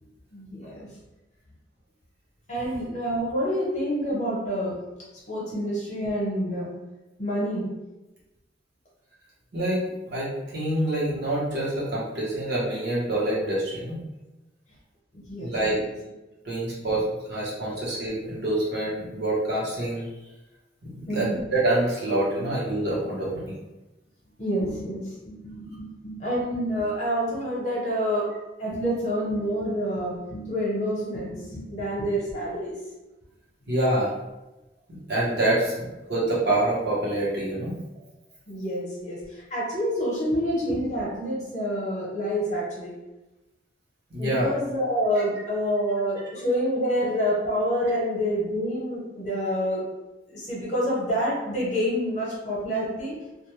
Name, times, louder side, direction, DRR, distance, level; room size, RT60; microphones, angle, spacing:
voice 1, 0.3-0.9 2.5-4.8 5.3-6.7 7.2-7.7 15.1-15.9 17.6-17.7 21.1-21.4 22.4-22.5 24.4-28.3 28.6-32.7 38.5-42.9 44.2-49.9 50.3-53.2, equal, 40° left, -5 dB, 0.9 m, -28 dB
voice 2, 9.5-9.8 10.1-14.0 15.4-15.8 16.4-20.1 20.8-23.6 33.7-34.1 35.1-37.8 44.1-44.5, right 1 dB, 60° right, -7 dB, 1.0 m, -26 dB
2.4 x 2.2 x 3.1 m, 1.0 s
head